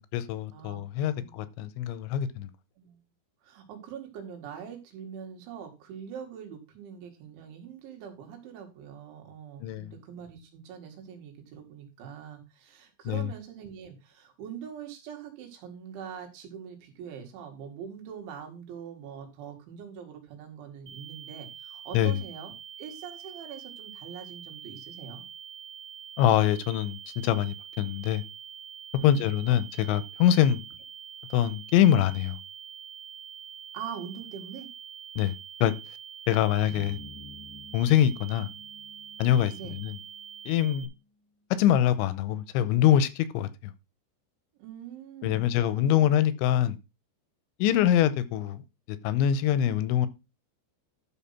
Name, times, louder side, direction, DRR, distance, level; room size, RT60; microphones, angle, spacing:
voice 1, 0.1-2.5 9.6-9.9 13.1-13.3 21.9-22.2 26.2-28.2 29.0-30.6 31.3-32.4 35.2-35.3 35.6-35.8 36.3-37.0 37.7-38.5 39.2-40.0 40.5-40.9 41.6-43.5 45.2-46.8 47.6-48.6 48.9-50.1, left 11 dB, 85° left, 3.0 m, -24 dB
voice 2, 3.4-22.5 22.8-25.2 29.0-29.3 33.7-34.7 39.6-39.8 44.6-46.1, right 8 dB, 80° right, 4.5 m, -43 dB
sound 1, 20.9-40.9, right 8 dB, 30° right, 1.7 m, -45 dB
sound 2, 36.7-41.1, left 2 dB, 15° left, 0.5 m, -50 dB
12.5 x 4.3 x 5.8 m
omnidirectional pair, 5.3 m